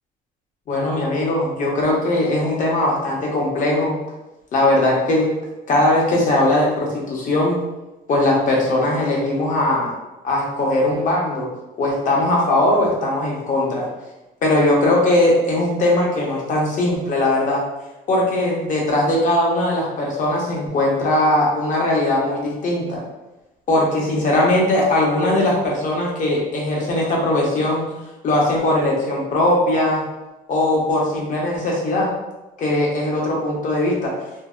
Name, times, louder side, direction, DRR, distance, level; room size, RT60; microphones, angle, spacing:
voice 1, 0.7-3.9 4.5-5.3 5.7-7.6 8.1-9.9 10.2-11.5 11.8-13.9 14.4-17.6 18.1-23.0 23.7-27.8 28.2-30.0 30.5-32.1 32.6-34.1, left 1 dB, 50° left, -2 dB, 0.8 m, -19 dB
2.6 x 2.1 x 2.4 m, 1.0 s
cardioid pair, 110°, 17 cm